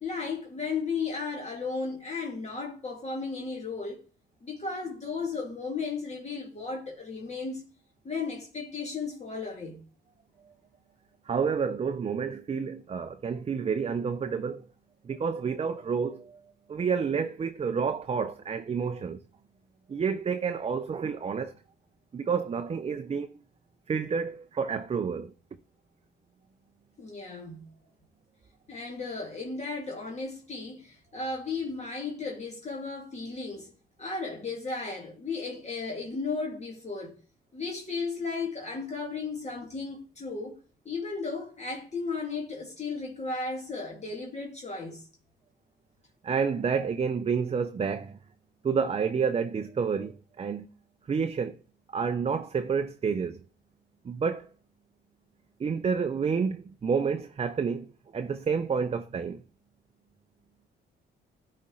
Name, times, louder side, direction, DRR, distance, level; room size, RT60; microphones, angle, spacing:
voice 1, 0.0-4.0 4.4-7.6 8.0-9.8 27.0-27.7 28.7-33.7 34.0-37.2 37.5-40.6 40.9-45.1, left 4 dB, 35° left, 2.1 m, -35 dB
voice 2, 11.3-14.7 15.0-16.4 16.7-19.2 19.9-21.5 22.1-23.3 23.9-25.3 46.2-48.2 48.6-50.7 51.1-51.6 51.9-53.4 54.0-54.5 55.6-59.4, right 6 dB, 30° right, 0.5 m, -29 dB
12.0 x 4.3 x 3.8 m
cardioid pair, 90°, 20 cm